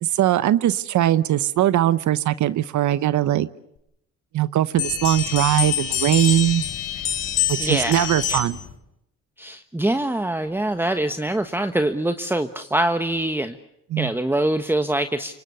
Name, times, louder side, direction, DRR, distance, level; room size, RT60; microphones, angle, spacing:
voice 1, 0.0-3.5 4.3-6.6 7.5-8.6 13.9-14.1, right 12 dB, 70° right, 15 dB, 0.9 m, -20 dB
sound 1, 4.8-8.7, left 10 dB, 90° left, 4.4 m, -26 dB
voice 2, 7.6-8.4 9.4-13.6 14.0-15.3, right 1 dB, 5° right, 8 dB, 1.3 m, -24 dB
27.5 x 24.5 x 6.9 m, 0.81 s
cardioid pair, 90°, 30 cm